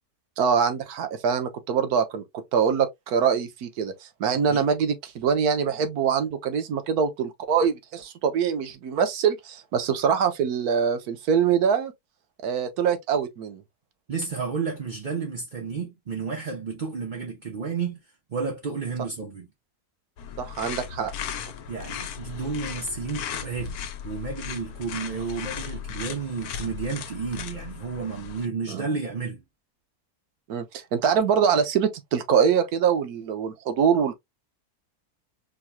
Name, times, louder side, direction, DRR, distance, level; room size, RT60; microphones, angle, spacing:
voice 1, 0.4-2.2 2.5-3.9 4.2-11.9 12.4-13.6 20.4-21.1 28.7-28.8 30.5-34.1, right 7 dB, 80° right, 1.3 m, -24 dB
voice 2, 14.1-18.0 18.3-19.5 21.7-23.8 24.0-29.4, right 5 dB, 40° right, 0.7 m, -31 dB
sound 1, 20.2-28.5, left 8 dB, 80° left, 1.1 m, -36 dB
4.5 x 3.0 x 2.2 m
omnidirectional pair, 1.6 m